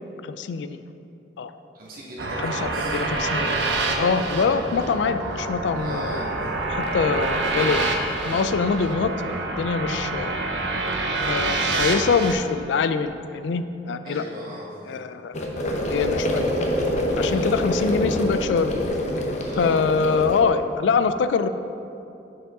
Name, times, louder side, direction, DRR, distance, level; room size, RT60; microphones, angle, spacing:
voice 1, 0.2-0.8 1.4-1.5 2.4-3.6 4.0-6.2 6.7-7.9 8.2-10.4 11.2-14.2 14.8-15.3 15.9-16.4 17.2-18.7 19.6-21.5, left 5 dB, 90° left, 11 dB, 0.3 m, -24 dB
voice 2, 1.7-3.0 4.3-4.7 5.7-6.4 14.0-14.7 17.2-17.5 19.4-19.7, right 1 dB, 55° right, -5 dB, 1.1 m, -38 dB
sound 1, 2.2-12.3, right 2 dB, 90° right, 0.7 m, -27 dB
sound 2, 15.3-20.4, equal, 40° left, 0.7 m, -25 dB
6.4 x 4.6 x 4.7 m, 2.7 s
head